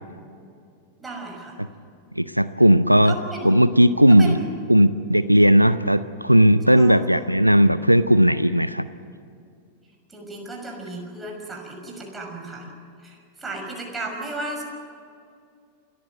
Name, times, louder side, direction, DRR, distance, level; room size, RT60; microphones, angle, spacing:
voice 1, 1.0-1.6 3.0-3.6 4.2-4.5 6.7-7.1 10.1-12.7 13.0-14.6, right 2 dB, 10° right, 1 dB, 6.0 m, -34 dB
voice 2, 2.2-3.1 3.4-4.4 4.7-8.9, equal, 90° right, 14 dB, 0.5 m, -16 dB
28.0 x 14.5 x 9.3 m, 2.4 s
figure-of-eight pair, 90°, 0 cm